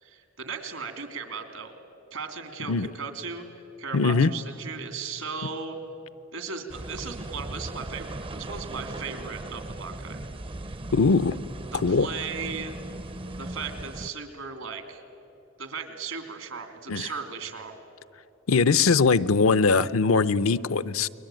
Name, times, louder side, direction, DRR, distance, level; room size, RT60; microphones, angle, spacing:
voice 1, 0.0-1.7 2.1-5.8 6.3-10.2 11.7-12.7 13.4-15.0 15.6-17.8, right 5 dB, 80° right, 7 dB, 2.9 m, -37 dB
voice 2, 3.9-4.3 10.9-11.4 11.7-12.1 16.9-17.1 18.5-21.1, left 4 dB, 75° left, 14 dB, 0.7 m, -21 dB
sound 1, 6.7-14.1, right 2 dB, 25° right, 0.5 m, -38 dB
29.5 x 22.0 x 9.1 m, 3.0 s
head